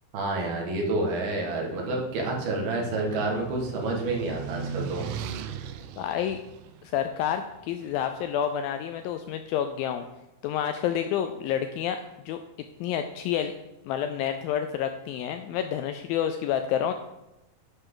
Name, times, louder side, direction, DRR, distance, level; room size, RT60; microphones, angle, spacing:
voice 1, 0.1-5.1, right 2 dB, 70° right, 0 dB, 3.6 m, -29 dB
sound 1, 2.1-8.0, right 7 dB, 90° right, 2.8 m, -38 dB
voice 2, 6.0-6.4 6.8-10.1 10.4-12.4 12.8-13.5 13.9-16.9, left 9 dB, 85° left, 7 dB, 2.1 m, -29 dB
10.5 x 10.0 x 3.9 m, 0.93 s
omnidirectional pair, 4.6 m